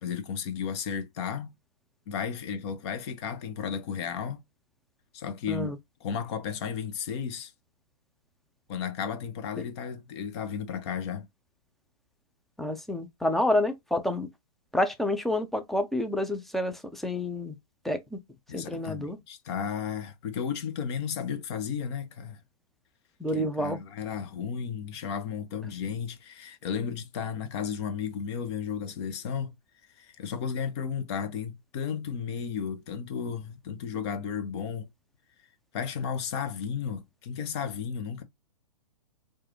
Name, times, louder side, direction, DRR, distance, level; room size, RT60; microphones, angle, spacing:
voice 1, 0.0-1.5 2.1-4.4 5.1-7.5 8.7-11.3 18.5-22.4 23.3-29.5 30.0-34.9 35.7-38.2, left 7 dB, 45° left, 0.9 m, -34 dB
voice 2, 12.6-14.3 14.7-17.5 17.8-18.2 18.5-19.2 23.2-23.8, left 1 dB, ahead, 0.5 m, -28 dB
4.6 x 2.4 x 3.0 m
hypercardioid pair, 130°, 19 cm